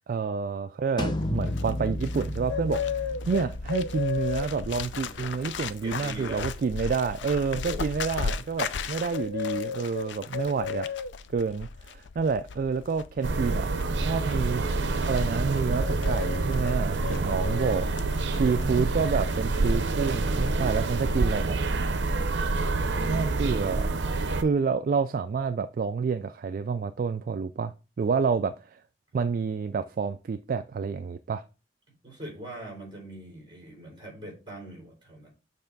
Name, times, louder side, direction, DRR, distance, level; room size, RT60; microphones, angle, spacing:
voice 1, 0.1-2.8 3.3-10.9 11.3-13.7 14.0-14.6 15.0-17.9 18.3-21.6 23.1-23.9 24.3-27.7 28.0-28.8 29.1-31.4, right 5 dB, 50° right, 0.3 m, -28 dB
sound 1, 1.0-6.6, left 1 dB, 25° left, 0.6 m, -35 dB
Bird, 1.2-19.0 19.3-19.6, left 6 dB, 85° left, 0.5 m, -35 dB
voice 2, 5.0-5.4 5.8-6.5 7.6-7.9 32.0-35.3, right 1 dB, 25° right, 3.4 m, -42 dB
sound 2, 13.2-24.4, right 3 dB, 85° right, 0.6 m, -27 dB
6.7 x 3.3 x 5.2 m
head